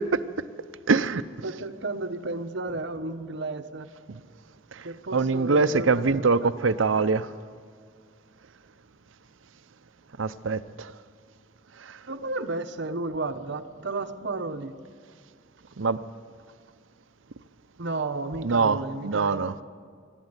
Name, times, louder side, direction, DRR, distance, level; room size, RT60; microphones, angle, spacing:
voice 1, 0.9-1.2 4.1-4.2 5.1-7.3 10.2-10.9 15.8-16.0 18.4-18.8 19.0-19.5, right 4 dB, 85° right, 0.7 m, -23 dB
voice 2, 1.4-3.9 4.8-6.5 12.1-14.8 17.8-19.5, right 3 dB, 65° right, 1.1 m, -33 dB
25.5 x 12.5 x 8.1 m
head